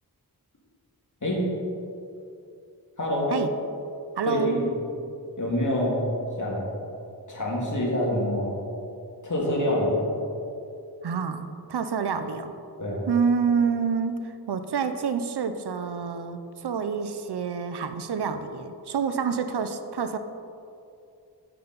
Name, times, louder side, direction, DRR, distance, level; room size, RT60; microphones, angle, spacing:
voice 1, 3.0-3.3 4.2-4.7 5.4-6.0 6.4-6.7 7.3-8.6 9.2-10.0 12.8-13.0, left 1 dB, 50° left, -4 dB, 1.9 m, -26 dB
voice 2, 4.2-4.7 11.0-12.5 13.1-20.2, right 6 dB, 75° right, 9 dB, 0.6 m, -28 dB
7.5 x 6.9 x 3.9 m, 2.6 s
wide cardioid pair, 80°, 40 cm